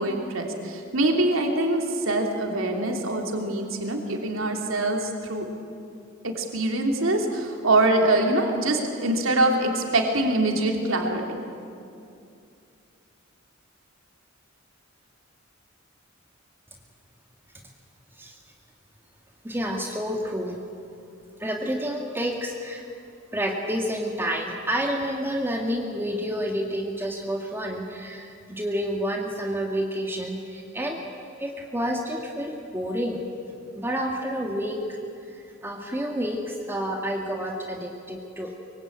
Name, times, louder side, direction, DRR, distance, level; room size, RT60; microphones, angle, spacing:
voice 1, 0.0-5.5 6.2-11.5, right 2 dB, 85° right, 2 dB, 3.1 m, -24 dB
voice 2, 19.4-20.6 21.4-22.8 23.3-31.0 31.4-33.2 33.8-35.0 35.3-38.6, equal, 10° right, 0 dB, 1.9 m, -29 dB
24.5 x 23.5 x 8.8 m, 2.5 s
head